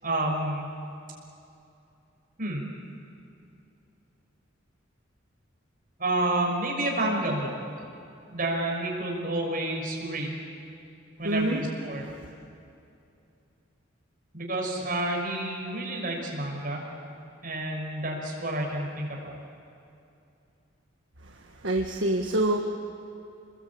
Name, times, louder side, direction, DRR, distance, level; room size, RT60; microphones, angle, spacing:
voice 1, 0.0-0.7 2.4-2.6 6.0-7.5 7.8-7.9 8.3-10.4 11.2-12.1 14.3-16.8 17.4-19.4, right 1 dB, 45° right, 0 dB, 6.1 m, -29 dB
voice 2, 11.2-11.6 12.0-12.3 21.2-22.6, right 1 dB, 65° right, 1 dB, 1.7 m, -27 dB
27.5 x 21.5 x 8.7 m, 2.7 s
head